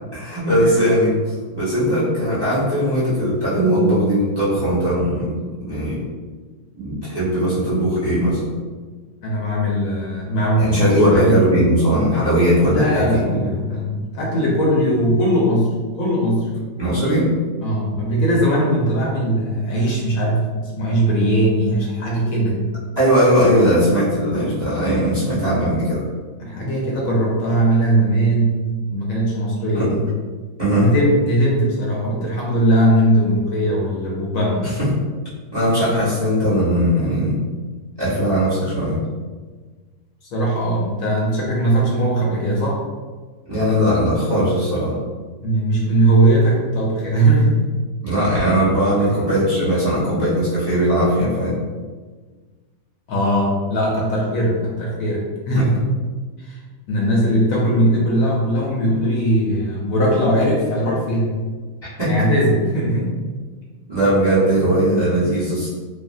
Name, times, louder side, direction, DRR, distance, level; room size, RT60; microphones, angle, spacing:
voice 1, 0.1-6.1 6.8-8.5 10.6-13.4 16.8-17.4 23.0-26.0 29.7-30.0 30.6-30.9 34.6-34.9 35.5-37.4 38.0-39.0 43.5-44.9 48.0-51.6 55.5-55.6 62.0-62.3 63.9-65.7, equal, 20° right, -11 dB, 0.7 m, -19 dB
voice 2, 9.2-11.4 12.7-16.5 17.6-22.7 26.4-28.6 28.9-29.9 30.8-34.7 40.3-42.8 45.4-47.6 49.0-49.1 53.1-55.9 56.4-56.6 56.9-61.3 62.0-63.2, right 1 dB, 70° left, -3 dB, 1.0 m, -19 dB
3.3 x 2.1 x 2.5 m, 1.4 s
omnidirectional pair, 1.6 m